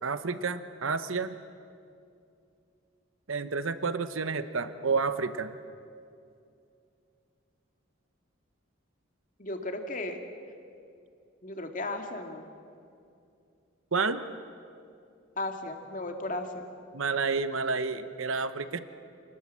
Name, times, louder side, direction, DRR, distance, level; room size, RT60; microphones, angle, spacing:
voice 1, 0.0-1.4 3.3-5.5 13.9-14.2 16.9-18.8, right 4 dB, 85° right, 11 dB, 1.0 m, -30 dB
voice 2, 9.4-10.2 11.4-12.5 15.4-16.7, left 2 dB, 40° left, 4 dB, 2.2 m, -35 dB
28.0 x 20.0 x 7.5 m, 2.5 s
head